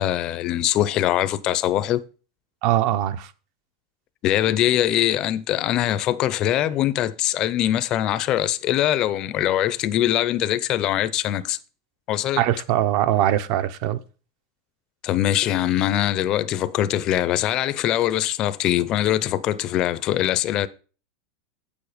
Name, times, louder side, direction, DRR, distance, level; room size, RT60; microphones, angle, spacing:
voice 1, 0.0-2.0 4.2-11.6 12.1-12.4 15.0-20.7, left 12 dB, 30° left, 0.6 m, -22 dB
voice 2, 2.6-3.3 12.4-14.0, right 12 dB, 45° right, 0.8 m, -21 dB
8.4 x 7.0 x 5.0 m
supercardioid pair, 165°, 2 cm